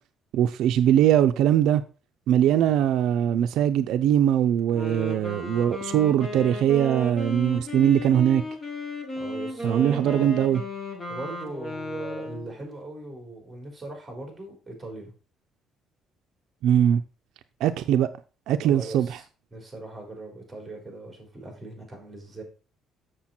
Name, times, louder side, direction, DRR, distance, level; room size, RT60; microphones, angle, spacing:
voice 1, 0.3-1.8 2.3-8.4 9.6-10.6 16.6-17.0 17.6-18.1 18.5-19.2, right 10 dB, 75° right, 0.5 m, -21 dB
Wind instrument woodwind instrument, 4.6-12.6, left 1 dB, 20° left, 1.8 m, -34 dB
voice 2, 9.2-10.3 11.1-15.1 18.6-19.2 19.5-22.4, right 2 dB, 10° right, 3.6 m, -40 dB
7.4 x 6.7 x 4.3 m
cardioid pair, 140°, 0 cm